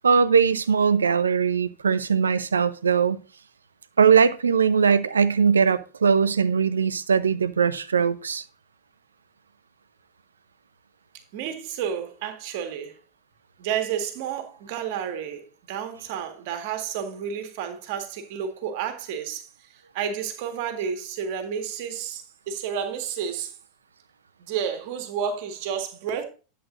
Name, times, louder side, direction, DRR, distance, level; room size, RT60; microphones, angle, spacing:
voice 1, 0.0-3.2 4.0-8.4, right 6 dB, 80° right, 0.6 m, -20 dB
voice 2, 11.3-13.0 13.6-23.5 24.5-26.2, right 8 dB, 55° right, 1.7 m, -31 dB
11.0 x 7.7 x 2.5 m
figure-of-eight pair, 90°, 0 cm